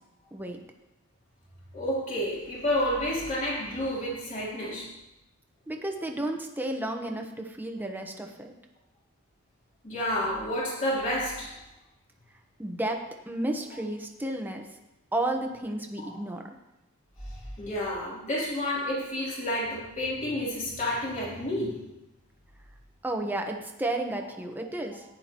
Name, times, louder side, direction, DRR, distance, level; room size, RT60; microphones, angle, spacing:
voice 1, 1.7-4.9 9.8-11.5 16.0-16.2 17.2-21.8, left 1 dB, 35° left, -6 dB, 3.5 m, -30 dB
voice 2, 5.7-8.5 12.6-13.0 13.3-14.6 15.1-16.4 23.0-25.0, right 1 dB, 10° right, 2 dB, 1.1 m, -32 dB
15.0 x 9.9 x 3.0 m, 0.93 s
head